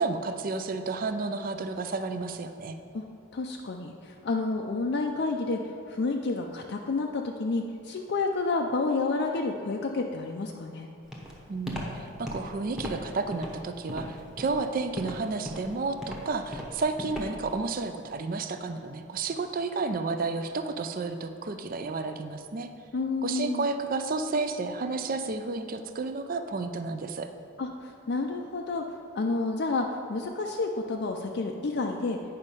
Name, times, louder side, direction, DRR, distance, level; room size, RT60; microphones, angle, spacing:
voice 1, 0.0-2.8 11.5-22.7 23.2-27.3, right 3 dB, 40° right, 8 dB, 0.4 m, -31 dB
voice 2, 3.3-10.9 22.9-23.7 27.6-28.8 29.1-32.2, left 3 dB, 50° left, 2 dB, 0.4 m, -30 dB
Walk footsteps, 11.1-17.6, equal, ahead, 0.9 m, -38 dB
9.0 x 5.4 x 5.4 m, 2.6 s
head